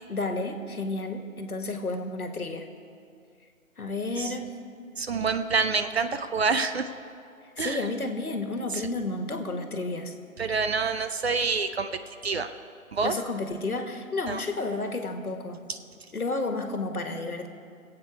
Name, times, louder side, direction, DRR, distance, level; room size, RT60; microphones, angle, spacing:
voice 1, 0.1-2.7 3.8-4.5 7.6-10.1 13.0-15.6 16.1-17.5, left 2 dB, 85° left, 6 dB, 1.6 m, -31 dB
voice 2, 5.0-6.9 7.6-7.8 10.4-11.9 12.2-12.5 12.9-13.1 14.3-14.4, right 4 dB, 45° right, 10 dB, 0.6 m, -27 dB
23.5 x 8.4 x 4.8 m, 2.4 s
figure-of-eight pair, 145°, 43 cm